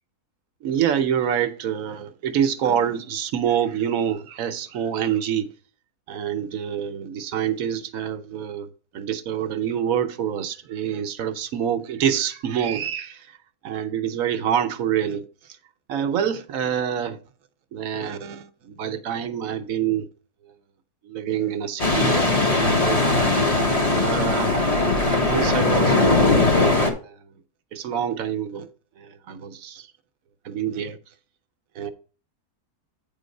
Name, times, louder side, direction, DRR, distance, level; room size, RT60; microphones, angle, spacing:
voice 1, 0.6-5.5 6.1-8.7 8.9-13.3 13.6-15.3 15.9-17.2 17.7-20.1 21.0-23.1 23.9-24.5 25.2-26.5 27.0-27.2 27.7-28.7 29.0-29.9 30.4-31.0 31.7-31.9, right 9 dB, 65° right, 1.1 m, -26 dB
sound 1, 21.8-26.9, left 2 dB, 25° left, 1.2 m, -19 dB
8.7 x 3.8 x 5.2 m
omnidirectional pair, 1.7 m